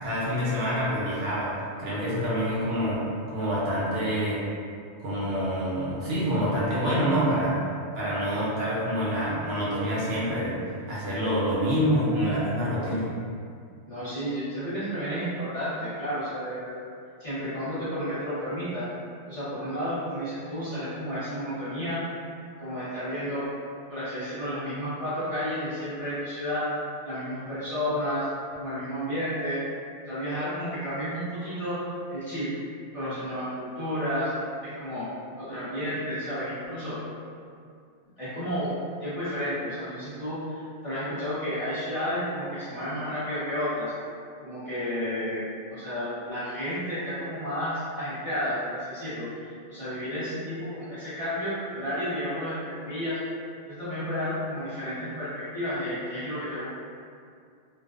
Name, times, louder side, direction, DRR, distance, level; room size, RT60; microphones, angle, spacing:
voice 1, 0.0-1.5 1.8-3.0 3.3-4.4 5.0-7.5 8.0-10.5 10.9-13.1, equal, 65° right, -8 dB, 0.8 m, -26 dB
voice 2, 13.9-16.7 17.2-18.8 19.3-22.0 22.6-23.5 23.9-26.7 27.0-28.3 28.6-29.6 30.1-31.8 32.1-32.6 32.9-34.3 34.6-35.1 35.4-37.0 38.2-43.9 44.4-45.4 45.7-53.2 53.7-56.6, equal, 35° left, -14 dB, 0.7 m, -31 dB
2.4 x 2.1 x 2.3 m, 2.3 s
omnidirectional pair, 1.2 m